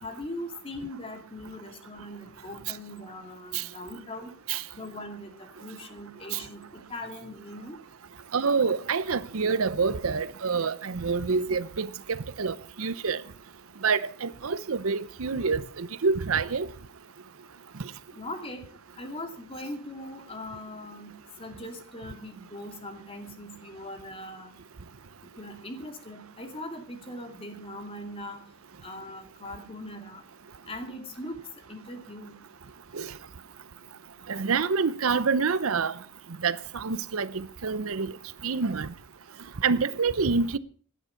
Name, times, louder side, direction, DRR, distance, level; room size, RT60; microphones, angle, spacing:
voice 1, 0.0-4.3 4.7-7.8 18.1-18.6 19.0-21.1 21.4-24.6 25.4-28.4 28.8-30.2 30.7-31.4 31.7-32.4, left 1 dB, 25° left, 2.6 m, -40 dB
voice 2, 8.3-13.2 13.8-16.7 32.9-33.1 34.3-35.9 36.4-38.1 38.4-38.9 39.6-40.6, right 5 dB, 75° right, 0.7 m, -27 dB
17.0 x 11.0 x 5.8 m
head